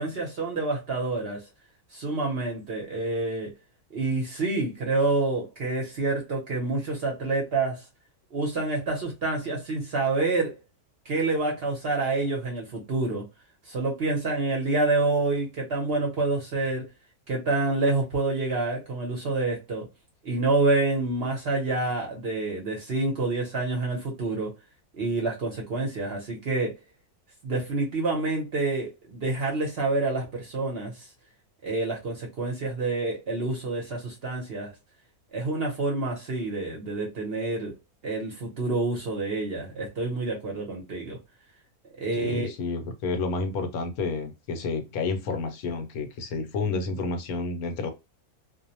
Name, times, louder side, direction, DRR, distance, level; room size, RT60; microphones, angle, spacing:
voice 1, 0.0-1.4 1.9-3.5 3.9-7.9 8.3-10.5 11.1-13.2 13.7-16.9 17.3-19.9 20.2-24.5 24.9-26.7 27.4-31.1 31.6-34.7 35.3-37.7 38.0-41.2 42.0-42.5, right 3 dB, 50° right, 0.8 m, -27 dB
voice 2, 42.2-47.9, left 3 dB, 75° left, 1.1 m, -30 dB
2.6 x 2.0 x 2.7 m
omnidirectional pair, 1.6 m